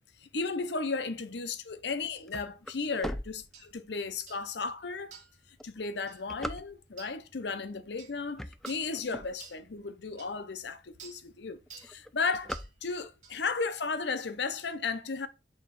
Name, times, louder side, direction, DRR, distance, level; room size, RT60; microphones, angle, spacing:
voice 1, 0.2-5.2 5.6-12.5 12.8-15.3, left 4 dB, 70° left, 0.7 m, -34 dB
sound 1, 1.8-4.1 4.7-4.8 5.4-7.1 7.8-8.0 8.3-9.8 10.3-10.4 10.6-10.7 11.0-11.4 11.7-13.3, equal, ahead, 0.3 m, -40 dB
sound 2, 3.5-3.7 4.3-4.5 5.1-5.4 6.1-6.2 7.0-7.2 8.0-8.2 8.6-8.9 9.4-9.6 10.2-10.3 11.0-11.2 11.7-11.9 12.5-12.7 13.2-13.4, right 6 dB, 40° right, 1.5 m, -50 dB
6.5 x 3.5 x 5.8 m
head